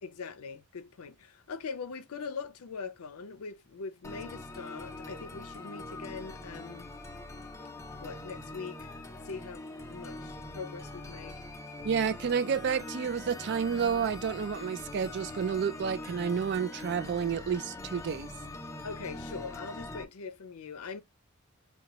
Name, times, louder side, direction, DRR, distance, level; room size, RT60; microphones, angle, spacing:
voice 1, 0.0-6.9 8.0-8.9 9.2-11.4 18.8-21.0, left 5 dB, 80° left, 0.5 m, -42 dB
sound 1, 4.0-20.0, left 2 dB, 15° left, 0.5 m, -43 dB
voice 2, 11.8-18.3, right 7 dB, 55° right, 0.4 m, -30 dB
6.4 x 2.2 x 2.9 m
head